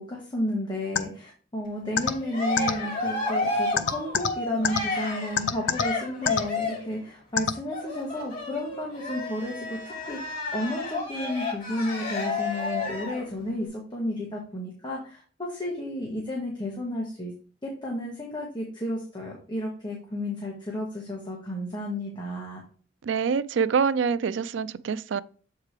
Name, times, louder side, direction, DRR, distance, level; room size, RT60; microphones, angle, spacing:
voice 1, 0.0-17.3 17.6-22.6, left 1 dB, 25° left, 1.4 m, -32 dB
sound 1, 0.9-1.0 2.0-2.1 2.6-2.7 3.8-4.3 4.6-4.8 5.4-5.8 6.3-6.4 7.4-7.5, left 7 dB, 80° left, 0.6 m, -23 dB
Cheering, 1.9-6.9 7.7-13.3, left 2 dB, 45° left, 2.9 m, -31 dB
voice 2, 23.0-25.2, right 6 dB, 90° right, 0.4 m, -25 dB
7.4 x 4.7 x 3.2 m
head